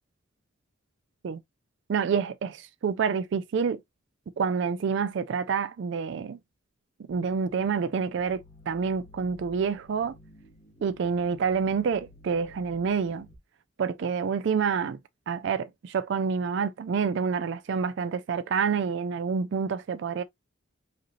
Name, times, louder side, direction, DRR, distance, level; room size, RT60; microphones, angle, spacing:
voice 1, 1.9-3.8 4.4-6.4 7.1-10.2 10.8-13.3 13.8-15.0 15.3-20.2, right 6 dB, 60° right, 0.3 m, -28 dB
sound 1, 7.1-13.4, left 2 dB, 30° left, 1.0 m, -54 dB
5.0 x 3.0 x 2.7 m
head